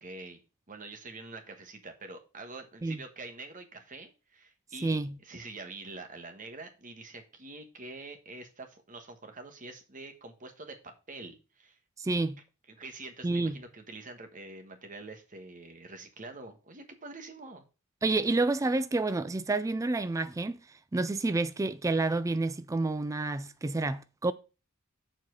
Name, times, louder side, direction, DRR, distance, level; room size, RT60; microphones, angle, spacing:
voice 1, 0.0-0.4 0.7-11.8 12.7-17.6, right 3 dB, 40° right, 1.3 m, -46 dB
voice 2, 4.8-5.1 12.0-12.4 13.2-13.5 18.0-20.6 20.9-24.3, right 2 dB, 15° right, 0.3 m, -29 dB
7.2 x 4.3 x 6.2 m
head